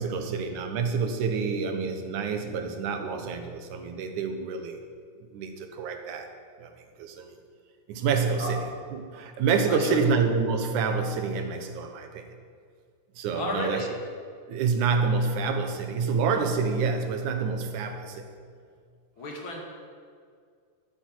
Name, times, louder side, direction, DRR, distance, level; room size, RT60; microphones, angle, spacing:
voice 1, 0.0-4.8 5.3-6.3 6.6-6.7 7.0-7.3 7.9-12.3 13.2-13.9 14.5-18.2, right 5 dB, 85° right, 6 dB, 2.7 m, -27 dB
voice 2, 9.7-10.1 13.3-13.9 19.2-19.6, left 1 dB, 45° left, 0 dB, 2.9 m, -33 dB
13.5 x 8.9 x 7.8 m, 2.1 s
omnidirectional pair, 3.4 m